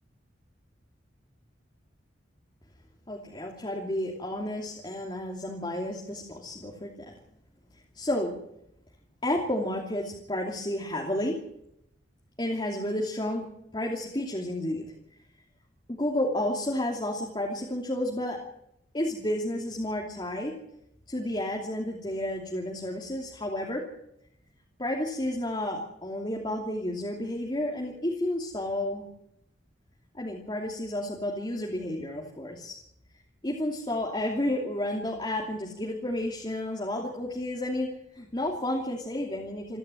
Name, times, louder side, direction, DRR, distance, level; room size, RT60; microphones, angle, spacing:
voice 1, 3.1-7.1 7.9-8.3 9.2-11.4 12.4-14.9 15.9-18.4 18.9-20.5 21.1-23.9 24.8-29.0 30.1-32.8 33.4-39.8, left 1 dB, 25° left, -1 dB, 2.9 m, -31 dB
28.0 x 11.5 x 9.1 m, 0.80 s
head